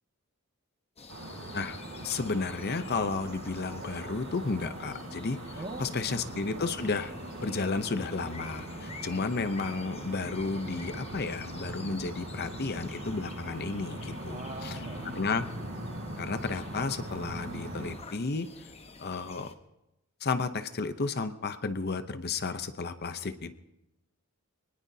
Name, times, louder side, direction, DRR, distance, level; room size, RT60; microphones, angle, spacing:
sound 1, 1.0-19.5, left 4 dB, 30° left, 1.0 m, -50 dB
sound 2, 1.1-17.9, right 1 dB, 75° right, 7.5 m, -41 dB
voice 1, 2.0-5.4 5.8-7.1 7.4-14.7 15.2-15.4 16.2-18.7 19.0-19.5 20.2-23.5, left 4 dB, 50° left, 10 dB, 0.7 m, -32 dB
voice 2, 5.6-6.4 9.0-9.4 14.2-15.2, right 1 dB, 35° right, 3 dB, 1.8 m, -43 dB
24.0 x 19.5 x 2.8 m, 0.91 s
head